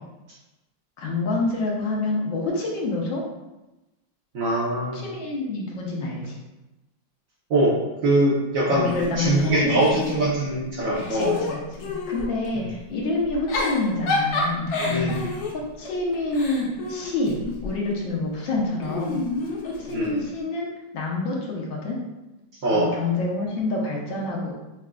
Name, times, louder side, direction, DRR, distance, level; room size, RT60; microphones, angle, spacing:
voice 1, 1.0-3.2 4.9-6.4 8.7-10.0 10.9-19.2 19.6-20.7 20.9-22.0 22.7-24.5, left 2 dB, 85° left, -2 dB, 1.5 m, -27 dB
voice 2, 4.3-5.0 7.5-8.9 9.2-11.3 14.9-15.2 19.9-20.2 22.6-22.9, right 1 dB, 60° right, -5 dB, 1.0 m, -22 dB
Giggle / Chuckle chortle, 8.9-10.5 10.9-12.3 13.3-17.8 18.8-20.2, left 3 dB, 65° left, 1.1 m, -29 dB
6.0 x 2.4 x 2.2 m, 1.0 s
omnidirectional pair, 2.0 m